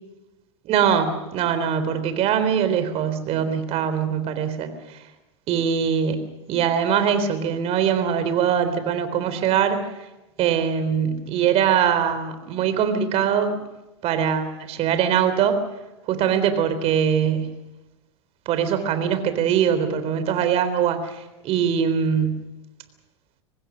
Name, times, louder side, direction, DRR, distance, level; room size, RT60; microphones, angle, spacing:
voice 1, 0.7-5.0 5.5-9.8 10.4-13.6 14.0-15.6 16.1-17.5 18.5-22.4, right 8 dB, 45° right, 10 dB, 3.7 m, -22 dB
25.0 x 20.0 x 6.3 m, 1.0 s
hypercardioid pair, 100°, 15 cm